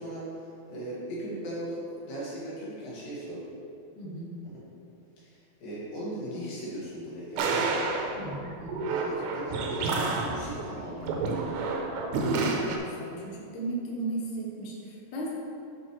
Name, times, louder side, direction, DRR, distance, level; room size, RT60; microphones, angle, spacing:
voice 1, 0.0-3.4 5.2-7.9 8.8-11.6, right 1 dB, 60° left, -7 dB, 3.2 m, -38 dB
voice 2, 4.0-4.3 8.2-8.9 12.3-15.3, right 2 dB, 90° left, -4 dB, 1.7 m, -36 dB
sound 1, 7.4-12.8, right 3 dB, 80° right, 2.8 m, -29 dB
8.2 x 6.5 x 3.1 m, 2.6 s
omnidirectional pair, 5.3 m